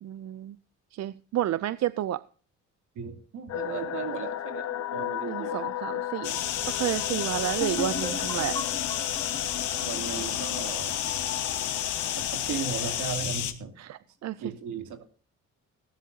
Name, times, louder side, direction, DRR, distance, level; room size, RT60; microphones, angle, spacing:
voice 1, 0.0-0.6 0.9-2.2 5.3-6.4 6.7-8.6 13.8-14.5, right 12 dB, 60° right, 0.6 m, -31 dB
voice 2, 3.0-5.6 9.7-11.0 12.2-13.7 14.4-15.1, right 6 dB, 80° right, 2.8 m, -36 dB
sound 1, 3.5-13.1, left 13 dB, 60° left, 0.6 m, -36 dB
sound 2, 6.2-13.5, left 10 dB, 80° left, 1.9 m, -31 dB
sound 3, 7.6-11.2, left 3 dB, 15° left, 2.2 m, -38 dB
17.5 x 13.0 x 2.8 m
cardioid pair, 90°, 30 cm